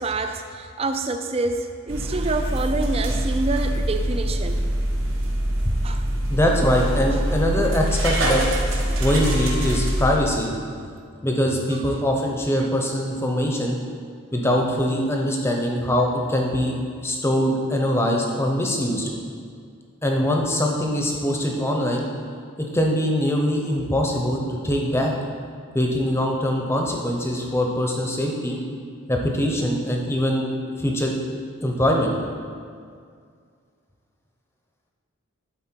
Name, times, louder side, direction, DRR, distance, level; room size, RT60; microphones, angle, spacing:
voice 1, 0.0-4.6 5.8-6.0 6.6-6.7 7.1-7.2 8.9-9.0 9.6-9.7, right 3 dB, 25° right, 7 dB, 0.4 m, -27 dB
sound 1, 1.9-10.1, right 1 dB, 65° right, 1.2 m, -24 dB
voice 2, 6.3-8.4 9.0-10.5 11.2-13.8 14.3-16.8 17.0-19.1 20.0-22.0 22.7-25.1 25.7-28.6 29.1-30.5 30.8-31.2 31.6-32.1, equal, 10° left, 0 dB, 0.7 m, -22 dB
11.0 x 4.4 x 4.5 m, 2.2 s
head